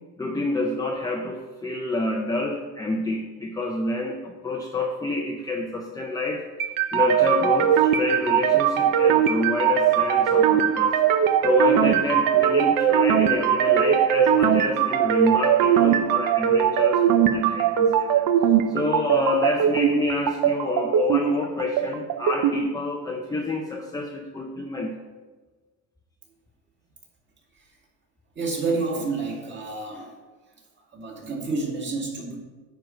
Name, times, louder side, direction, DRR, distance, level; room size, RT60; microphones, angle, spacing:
voice 1, 0.2-6.4 6.9-11.0 11.4-18.2 18.7-25.0, left 2 dB, 10° left, 1 dB, 0.5 m, -28 dB
sound 1, 6.6-22.6, right 9 dB, 55° right, 0.7 m, -20 dB
voice 2, 28.4-30.2 30.9-32.4, right 3 dB, 30° right, -1 dB, 2.1 m, -29 dB
9.8 x 4.6 x 6.4 m, 1.3 s
cardioid pair, 150°, 40 cm